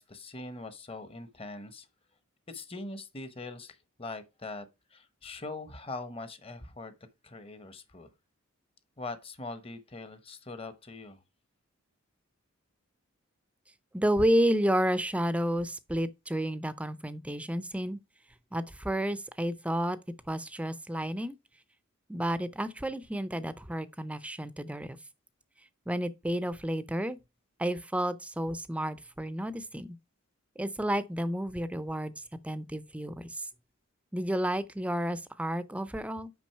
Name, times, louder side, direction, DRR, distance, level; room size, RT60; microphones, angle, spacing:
voice 1, 0.0-1.9 2.5-4.7 4.9-6.9 7.2-8.1 9.0-11.2, left 2 dB, 25° left, 0.9 m, -42 dB
voice 2, 13.9-18.0 18.5-20.0 20.3-21.3 22.1-25.0 25.9-27.2 27.6-30.0 30.6-33.5 34.1-36.3, equal, 5° right, 0.5 m, -31 dB
6.2 x 5.2 x 5.5 m
head